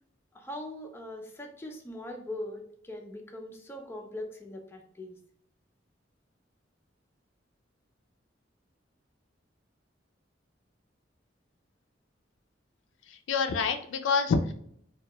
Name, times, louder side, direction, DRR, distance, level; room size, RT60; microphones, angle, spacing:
voice 1, 0.3-5.2, left 1 dB, 15° left, 1 dB, 0.4 m, -41 dB
voice 2, 13.1-14.5, left 5 dB, 85° left, 8 dB, 0.3 m, -27 dB
2.2 x 2.2 x 2.8 m, 0.66 s
head